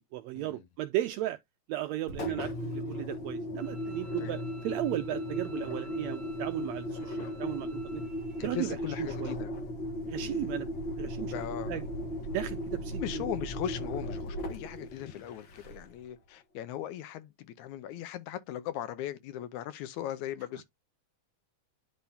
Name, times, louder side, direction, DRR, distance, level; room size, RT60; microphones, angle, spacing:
voice 1, 0.0-1.4 1.7-8.0 8.4-9.3 10.1-11.3 11.7-11.8 12.3-13.3, right 15 dB, 80° right, 1.6 m, -35 dB
Engine, 2.0-16.0, left 1 dB, 55° left, 1.4 m, -36 dB
Bowed string instrument, 3.6-8.6, right 1 dB, 50° right, 2.0 m, -55 dB
voice 2, 8.4-9.5 10.2-10.5 11.3-11.8 13.0-20.6, left 11 dB, 75° left, 2.1 m, -39 dB
10.5 x 3.6 x 2.7 m
omnidirectional pair, 3.5 m